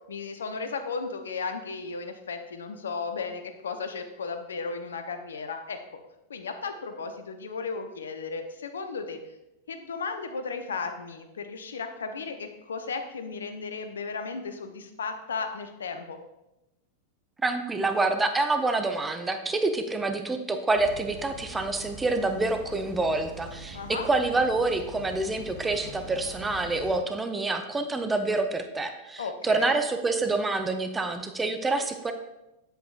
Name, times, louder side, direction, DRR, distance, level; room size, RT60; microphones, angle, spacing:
voice 1, 0.1-5.8 6.3-9.2 9.7-16.2 23.7-24.1 29.2-29.7, left 4 dB, 70° left, 7 dB, 0.7 m, -35 dB
voice 2, 17.4-32.1, right 3 dB, 10° right, 7 dB, 0.7 m, -27 dB
sound 1, 20.7-27.0, right 2 dB, 50° right, 1.9 m, -43 dB
8.0 x 7.9 x 2.5 m, 0.93 s
figure-of-eight pair, 90°, 0 cm